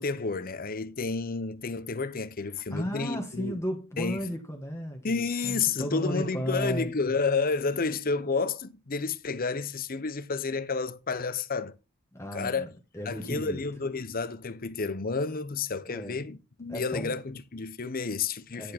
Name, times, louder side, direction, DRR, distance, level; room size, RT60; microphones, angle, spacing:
voice 1, 0.0-3.6 4.0-4.2 5.0-11.8 12.3-12.7 13.1-18.7, left 4 dB, 40° left, 0.8 m, -30 dB
voice 2, 2.5-6.9 12.1-12.7 12.9-13.6 15.9-16.2 16.7-17.2 18.5-18.7, equal, 15° left, 1.5 m, -34 dB
10.5 x 6.3 x 4.4 m
head